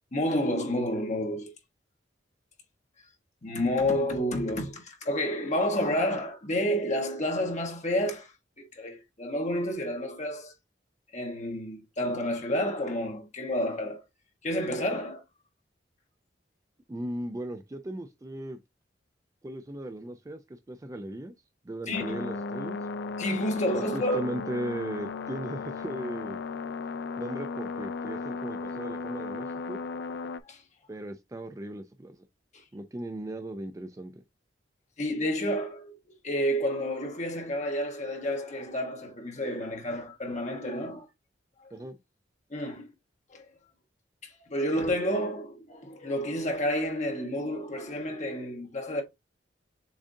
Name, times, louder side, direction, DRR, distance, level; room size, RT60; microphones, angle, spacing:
voice 1, 0.1-1.5 3.4-10.5 11.1-14.0 14.4-15.2 21.9-22.2 23.2-24.2 30.4-30.6 35.0-35.9 36.2-41.1 41.6-41.7 42.5-42.9 43.3-43.4 44.2-49.0, equal, 40° left, 1.1 m, -30 dB
voice 2, 16.9-18.6 19.4-21.3 21.6-22.8 23.7-26.4 27.2-29.8 30.9-32.2 32.7-34.1 41.7-42.0, right 1 dB, 20° right, 0.4 m, -37 dB
sound 1, 21.9-30.4, left 4 dB, 65° left, 0.3 m, -36 dB
7.0 x 2.5 x 2.6 m
head